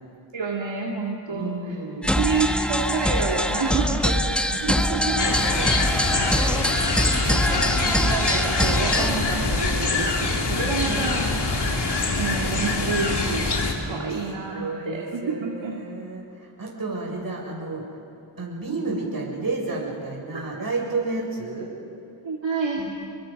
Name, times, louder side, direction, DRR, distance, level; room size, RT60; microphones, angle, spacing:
voice 1, 0.3-1.8 2.1-4.6 6.4-11.6 12.2-15.8 20.3-20.4 22.2-22.9, right 4 dB, 70° right, -1 dB, 2.4 m, -29 dB
voice 2, 1.3-2.2 4.5-5.7 10.6-11.1 13.8-14.1 14.4-17.8 18.4-21.7 22.8-22.9, right 3 dB, 45° right, -2 dB, 7.0 m, -31 dB
sound 1, 2.0-9.2, equal, ahead, 1.3 m, -24 dB
sound 2, 5.2-13.7, left 3 dB, 55° left, 3.1 m, -24 dB
30.0 x 22.5 x 5.4 m, 2.5 s
cardioid pair, 65°, 47 cm